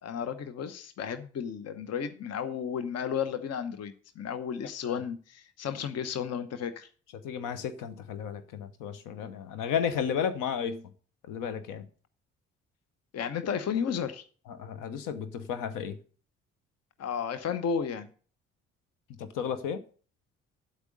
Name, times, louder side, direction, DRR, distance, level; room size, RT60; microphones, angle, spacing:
voice 1, 0.0-6.9 13.1-14.2 17.0-18.1, left 7 dB, 45° left, 1.0 m, -33 dB
voice 2, 7.1-10.8 11.2-11.9 14.5-16.0 19.2-19.8, left 7 dB, 60° left, 1.1 m, -33 dB
9.7 x 8.2 x 5.3 m
figure-of-eight pair, 45°, 36 cm